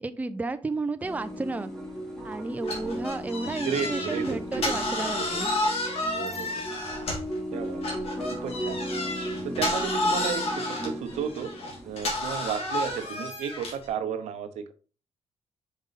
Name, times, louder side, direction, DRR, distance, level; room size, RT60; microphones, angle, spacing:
voice 1, 0.0-1.7 2.2-5.5, right 3 dB, 15° right, 10 dB, 0.5 m, -32 dB
sound 1, 1.0-13.0, equal, 5° left, 2.6 m, -36 dB
sound 2, 2.6-7.4 7.8-13.9, left 2 dB, 60° left, 2.3 m, -31 dB
voice 2, 3.6-5.4 6.1-6.7 7.5-7.8 8.3-8.8 9.4-11.5 11.8-14.7, right 7 dB, 85° right, 10 dB, 0.8 m, -33 dB
5.3 x 5.0 x 4.0 m, 0.37 s
cardioid pair, 105°, 11 cm